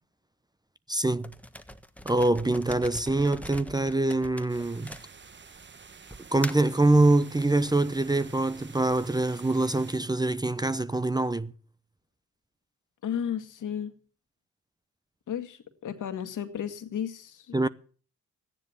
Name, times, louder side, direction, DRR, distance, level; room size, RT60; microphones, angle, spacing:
voice 1, 0.9-1.4 2.0-5.0 6.3-11.5 17.5-17.7, right 2 dB, 10° right, 0.9 m, -24 dB
sound 1, 1.2-5.5 6.1-6.8, equal, 5° left, 1.5 m, -42 dB
sound 2, 4.5-10.0, right 5 dB, 35° right, 1.3 m, -50 dB
voice 2, 13.0-13.9 15.3-17.6, left 9 dB, 65° left, 2.0 m, -33 dB
14.5 x 10.0 x 7.0 m
supercardioid pair, 55°, 33 cm